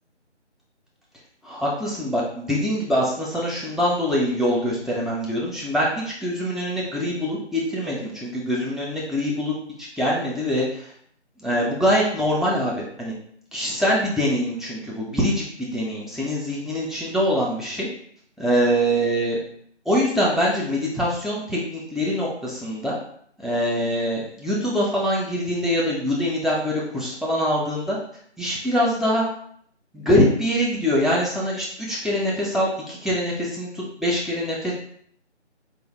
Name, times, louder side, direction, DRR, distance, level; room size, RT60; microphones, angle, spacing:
voice 1, 1.4-9.5 9.8-10.9 11.4-13.1 13.5-17.9 18.4-19.4 19.9-23.0 23.4-28.0 28.4-29.2 29.9-34.7, equal, ahead, -5 dB, 0.4 m, -24 dB
4.5 x 2.0 x 3.1 m, 0.63 s
figure-of-eight pair, 165°, 35 cm